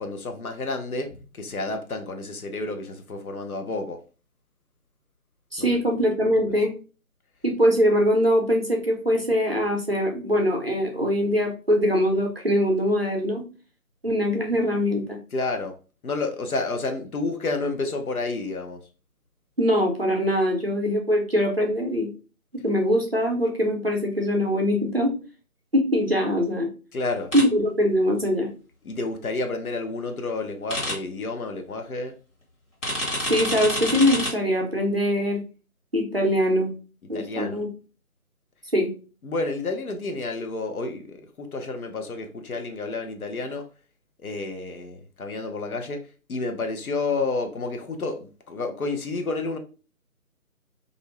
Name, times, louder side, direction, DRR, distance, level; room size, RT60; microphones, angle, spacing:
voice 1, 0.0-4.0 5.6-5.7 6.4-6.6 15.3-15.8 16.0-18.8 26.9-27.3 28.8-32.1 37.1-37.6 39.2-43.7 44.2-46.0 46.3-49.6, left 3 dB, 70° left, 0.7 m, -30 dB
voice 2, 5.5-6.7 7.4-13.4 14.0-15.2 19.6-22.1 22.6-25.1 25.7-26.7 27.3-28.5 33.3-35.4 35.9-36.7 37.1-37.7 38.7-38.9, equal, 45° right, 0.5 m, -22 dB
sound 1, 27.3-27.4 30.7-30.9 32.8-34.3, left 1 dB, 55° left, 1.2 m, -27 dB
2.5 x 2.0 x 2.9 m
figure-of-eight pair, 160°, 44 cm